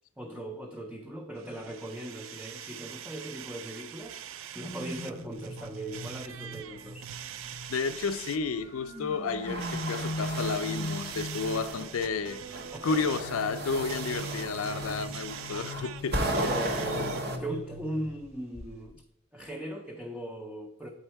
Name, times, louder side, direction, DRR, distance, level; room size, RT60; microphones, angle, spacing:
voice 1, 0.2-7.1 12.7-12.8 16.3-19.0 19.3-20.9, right 1 dB, 5° right, 0.5 m, -39 dB
sound 1, 1.4-17.3, right 10 dB, 70° right, 0.4 m, -44 dB
sound 2, 4.5-8.1 8.7-12.0 13.0-18.3 18.5-18.8, equal, 30° right, 1.4 m, -40 dB
voice 2, 7.7-12.4 12.8-16.2, left 4 dB, 85° left, 0.4 m, -31 dB
sound 3, 9.3-11.9 12.5-17.4, right 1 dB, 50° right, 0.9 m, -35 dB
9.2 x 4.4 x 4.5 m
head